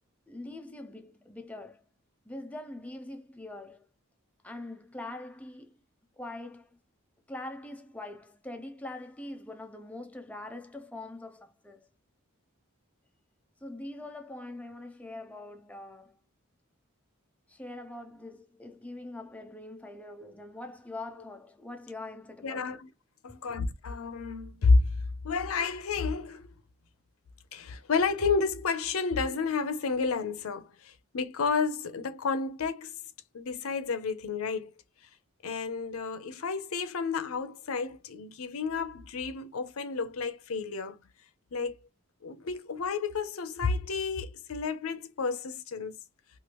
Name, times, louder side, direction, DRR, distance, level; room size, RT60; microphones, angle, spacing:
voice 1, 0.3-1.9 2.3-3.9 4.4-5.8 6.2-6.8 7.3-11.9 13.6-16.2 17.5-22.8, left 2 dB, 5° left, 0.4 m, -43 dB
voice 2, 22.4-22.9 23.2-24.8 25.2-26.5 27.5-32.9 33.3-34.7 35.4-41.0 41.5-41.8 42.2-46.0, left 4 dB, 75° left, 0.6 m, -30 dB
3.0 x 2.5 x 2.8 m
head